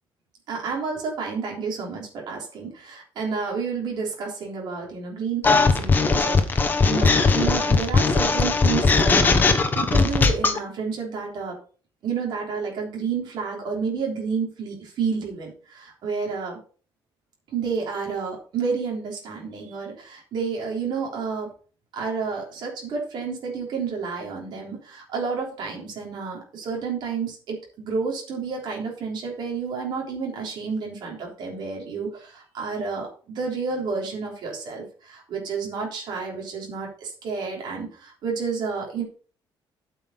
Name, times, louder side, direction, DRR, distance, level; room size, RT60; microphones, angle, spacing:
voice 1, 0.5-11.6 12.0-16.6 17.5-21.5 21.9-39.0, right 5 dB, 55° right, -1 dB, 3.4 m, -30 dB
sound 1, 5.4-10.6, left 4 dB, 20° left, 1.1 m, -19 dB
8.8 x 6.1 x 5.6 m, 0.40 s
cardioid pair, 180°, 9 cm